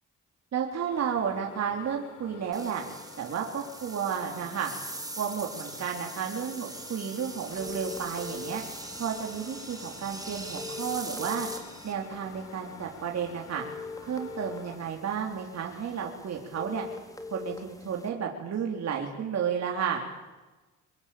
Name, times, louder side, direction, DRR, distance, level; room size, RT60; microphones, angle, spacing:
voice 1, 0.5-2.8 3.2-4.7 5.2-8.6 9.0-11.5 11.8-13.6 14.0-16.8 17.3-20.0, right 7 dB, 60° right, 1 dB, 3.8 m, -32 dB
sound 1, 0.9-14.8, left 4 dB, 80° left, 4.6 m, -50 dB
sound 2, 2.5-11.9, right 2 dB, 10° right, 4.4 m, -42 dB
sound 3, 7.5-18.1, left 4 dB, 10° left, 3.8 m, -44 dB
24.5 x 22.0 x 8.6 m, 1.2 s
cardioid pair, 90°, 30 cm